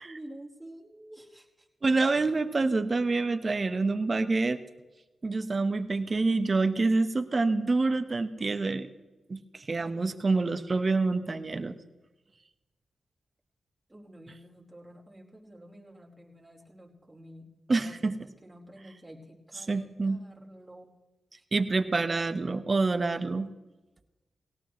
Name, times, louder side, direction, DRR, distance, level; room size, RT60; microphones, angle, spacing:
voice 1, 0.0-1.7 9.9-10.4 13.9-20.9 21.3-21.4, right 1 dB, 15° right, -1 dB, 4.6 m, -50 dB
voice 2, 1.8-4.6 5.2-8.9 9.3-11.7 17.7-18.1 19.7-20.2 21.5-23.5, right 3 dB, 45° right, 10 dB, 1.2 m, -27 dB
19.5 x 18.0 x 3.2 m, 1.1 s
supercardioid pair, 40°, 0 cm